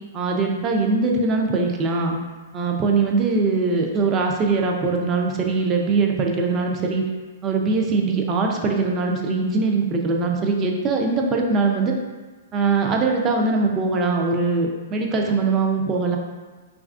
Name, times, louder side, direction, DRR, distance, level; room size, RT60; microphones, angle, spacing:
voice 1, 0.1-2.2 2.5-7.1 7.4-11.9 12.5-16.2, right 3 dB, 25° right, 1 dB, 0.3 m, -21 dB
3.2 x 2.3 x 2.4 m, 1.4 s
hypercardioid pair, 140°, 0 cm